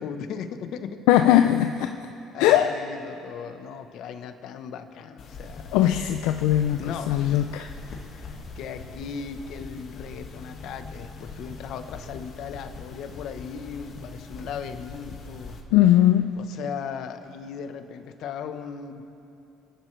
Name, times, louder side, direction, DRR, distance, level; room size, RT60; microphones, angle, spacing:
voice 1, 0.0-1.1 2.3-5.7 6.7-7.5 8.6-15.5 16.4-19.1, left 6 dB, 70° left, 8 dB, 1.1 m, -37 dB
voice 2, 1.1-1.9 2.4-2.7 5.7-7.7 15.7-16.4, left 12 dB, 85° left, 6 dB, 0.5 m, -20 dB
sound 1, 5.2-15.6, left 3 dB, 50° left, 1.8 m, -41 dB
29.5 x 11.0 x 3.3 m, 2.7 s
supercardioid pair, 85°, 0 cm